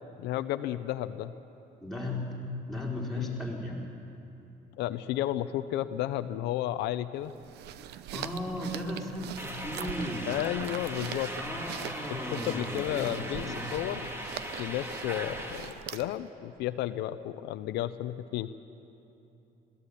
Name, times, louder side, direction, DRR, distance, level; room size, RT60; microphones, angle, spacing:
voice 1, 0.2-1.3 3.2-3.4 4.8-7.3 10.3-11.3 12.1-12.2 12.5-14.1 14.6-18.5, left 13 dB, 85° left, 11 dB, 0.7 m, -32 dB
voice 2, 1.8-2.3 2.7-3.8 8.1-10.5 11.3-13.7, left 1 dB, ahead, -4 dB, 4.3 m, -36 dB
sound 1, 7.2-16.3, right 11 dB, 80° right, 0.7 m, -43 dB
sound 2, 9.4-15.7, equal, 15° right, 2.3 m, -39 dB
21.0 x 16.5 x 8.5 m, 2.9 s
cardioid pair, 110°, 17 cm